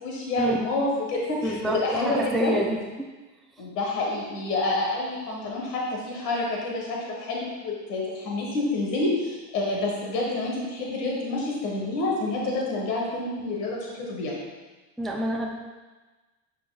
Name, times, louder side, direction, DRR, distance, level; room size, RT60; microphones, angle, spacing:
voice 1, 0.0-2.6 3.6-14.4, left 2 dB, 85° left, -2 dB, 1.5 m, -28 dB
voice 2, 1.4-3.1 15.0-15.5, right 1 dB, ahead, -1 dB, 0.3 m, -27 dB
8.6 x 5.0 x 2.3 m, 1.2 s
supercardioid pair, 105°, 48 cm